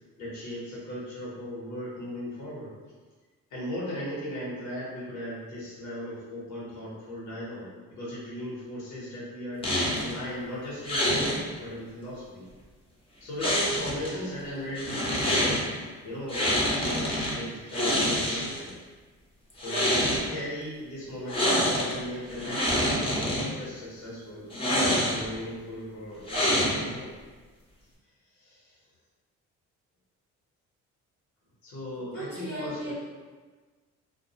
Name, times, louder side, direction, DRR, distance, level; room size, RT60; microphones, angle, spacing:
voice 1, 0.2-2.7 3.5-12.4 13.2-15.7 16.0-18.7 19.5-24.5 24.7-27.1 28.3-28.8 31.6-32.9, equal, 75° left, -7 dB, 0.9 m, -37 dB
sound 1, 9.6-10.1 10.9-11.4 13.4-14.1 14.8-15.6 16.3-17.3 17.7-18.7 19.5-20.2 21.3-21.9 22.3-23.4 24.5-25.4 26.3-27.0, equal, 20° left, 0.7 m, -26 dB
voice 2, 32.1-32.9, right 1 dB, 40° right, -7 dB, 0.6 m, -36 dB
2.2 x 2.1 x 2.7 m, 1.4 s
cardioid pair, 90°, 30 cm